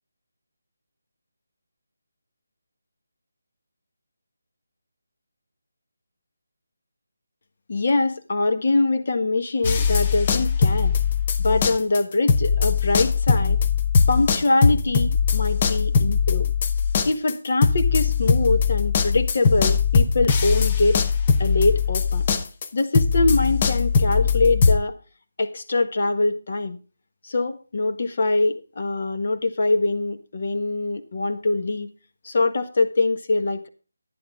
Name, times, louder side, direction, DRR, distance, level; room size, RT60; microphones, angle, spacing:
voice 1, 7.7-10.9 11.4-13.6 14.1-16.5 17.0-21.0 21.4-22.2 22.7-24.9 25.4-26.8 27.2-31.9 32.2-33.7, left 2 dB, 50° left, 8 dB, 1.5 m, -23 dB
sound 1, 9.6-12.0 12.3-24.8, left 6 dB, 30° left, 0.9 m, -21 dB
11.0 x 10.0 x 3.7 m, 0.34 s
figure-of-eight pair, 165°, 0 cm